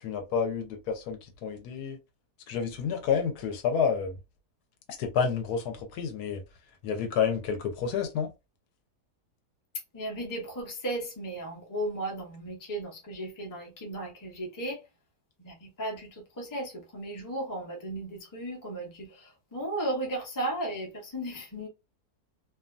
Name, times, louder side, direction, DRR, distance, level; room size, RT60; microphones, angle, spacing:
voice 1, 0.0-2.0 2.5-4.2 5.0-6.4 6.8-8.3, left 6 dB, 85° left, 1.2 m, -29 dB
voice 2, 9.9-14.8 15.4-21.7, right 1 dB, 20° left, 0.6 m, -35 dB
2.7 x 2.3 x 2.4 m
omnidirectional pair, 1.7 m